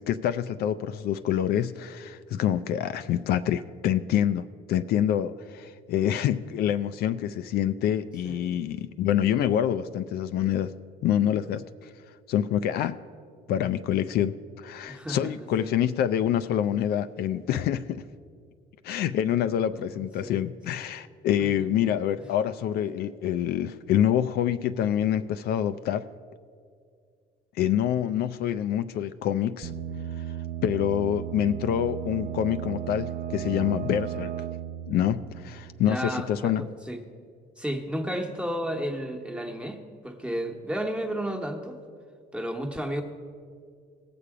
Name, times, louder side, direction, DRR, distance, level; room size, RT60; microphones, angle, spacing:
voice 1, 0.0-10.7 11.0-11.9 12.3-13.0 13.5-18.1 18.8-26.1 27.6-29.7 30.2-30.3 30.6-34.3 34.9-36.6, left 10 dB, 70° left, 12 dB, 0.4 m, -26 dB
voice 2, 14.9-15.3 15.6-15.7 19.9-20.4 21.4-21.5 22.2-22.3 35.8-37.0 37.6-41.8 42.3-43.0, equal, 5° right, 3 dB, 1.1 m, -32 dB
sound 1, 29.6-36.2, right 10 dB, 50° right, 0.5 m, -35 dB
17.5 x 6.9 x 4.8 m, 2.1 s
cardioid pair, 110°, 17 cm